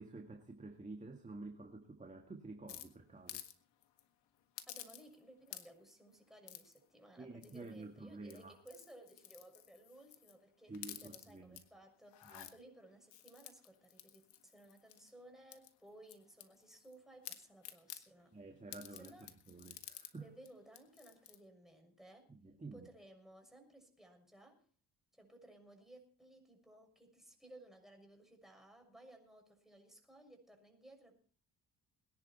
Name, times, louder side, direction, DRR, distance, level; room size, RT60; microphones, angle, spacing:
voice 1, 0.0-3.4 7.2-8.6 10.7-11.6 12.2-12.5 18.3-19.1 19.5-20.3 22.3-22.9, right 3 dB, 15° right, 4 dB, 2.0 m, -50 dB
sound 1, 2.7-3.5 3.8-4.0 4.6-5.2 5.5-5.9 6.5-6.8 7.4-7.8 8.2-10.4 10.7-11.6 12.1-12.5 13.1-15.1 15.5-16.9 17.2-18.0 18.7-20.1 20.5-20.6 20.7-21.4, left 12 dB, 85° left, 1.7 m, -52 dB
voice 2, 4.7-10.7 11.0-18.4 19.0-19.3 20.1-22.3 22.7-24.7 25.1-31.2, right 1 dB, ahead, 3 dB, 6.3 m, -59 dB
21.5 x 11.0 x 4.3 m, 0.42 s
cardioid pair, 85°, 41 cm